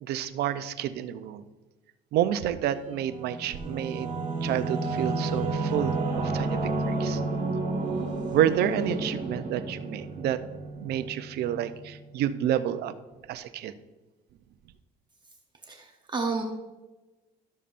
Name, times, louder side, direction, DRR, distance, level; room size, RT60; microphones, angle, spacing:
voice 1, 0.0-1.4 2.1-4.1 4.4-7.2 8.3-10.4 10.8-12.9 13.3-13.7, right 10 dB, 75° right, 12 dB, 0.6 m, -29 dB
Singing / Musical instrument, 2.9-12.1, right 3 dB, 45° right, 1.7 m, -31 dB
voice 2, 15.7-16.4, right 4 dB, 25° right, 3 dB, 0.8 m, -31 dB
12.0 x 7.0 x 2.5 m, 1.1 s
cardioid pair, 110°, 17 cm